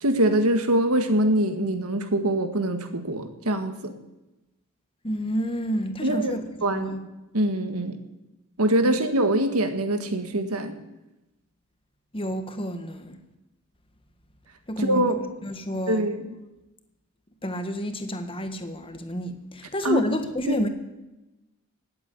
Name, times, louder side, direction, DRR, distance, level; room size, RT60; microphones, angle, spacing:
voice 1, 0.0-3.9 6.0-6.3 6.6-7.0 7.3-8.0 8.6-10.8 14.8-15.2 15.9-16.3 19.8-20.1 20.4-20.6, right 1 dB, 75° right, 1.7 m, -23 dB
voice 2, 5.0-6.4 6.7-7.0 8.8-9.0 12.1-13.2 14.7-16.1 17.4-20.7, equal, 25° left, 1.5 m, -30 dB
18.5 x 8.5 x 8.6 m
head